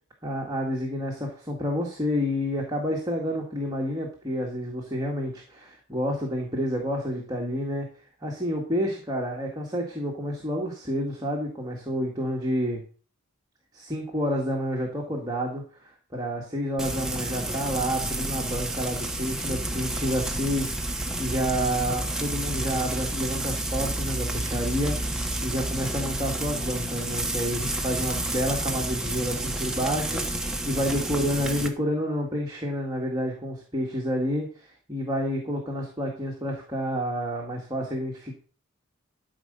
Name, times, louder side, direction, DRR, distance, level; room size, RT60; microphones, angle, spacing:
voice 1, 0.2-7.9 8.2-12.8 13.7-38.3, equal, 20° right, -1 dB, 1.8 m, -29 dB
Frying (food), 16.8-31.7, right 1 dB, 5° right, 1.0 m, -30 dB
13.0 x 5.1 x 6.8 m, 0.40 s
head